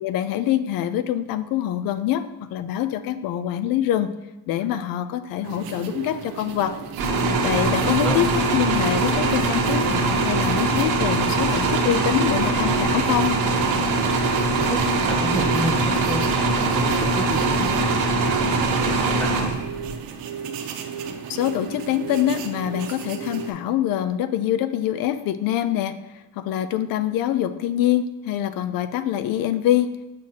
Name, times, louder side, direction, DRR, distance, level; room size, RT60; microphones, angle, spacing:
voice 1, 0.0-4.1 4.5-6.8 7.4-13.4 21.3-30.0, left 11 dB, 75° left, 12 dB, 0.5 m, -25 dB
sound 1, 5.4-23.5, right 7 dB, 85° right, 0.7 m, -35 dB
sound 2, 7.0-20.0, right 3 dB, 60° right, 1.1 m, -22 dB
voice 2, 15.0-18.9 19.2-19.6, equal, 5° left, 4 dB, 0.7 m, -30 dB
6.4 x 6.3 x 2.8 m, 1.0 s
cardioid pair, 140°, 34 cm